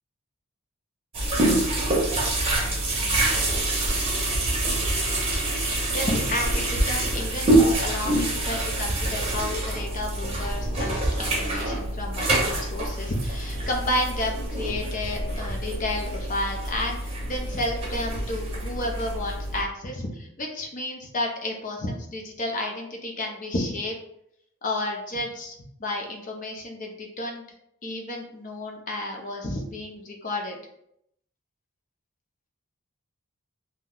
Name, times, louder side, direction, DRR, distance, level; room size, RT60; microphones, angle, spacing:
sound 1, 1.1-19.6, right 1 dB, 25° right, 0.7 m, -26 dB
voice 1, 5.9-23.9 24.6-25.5 25.8-27.4 27.8-30.6, left 1 dB, 35° left, 1 dB, 0.6 m, -31 dB
2.7 x 2.2 x 3.7 m, 0.75 s
head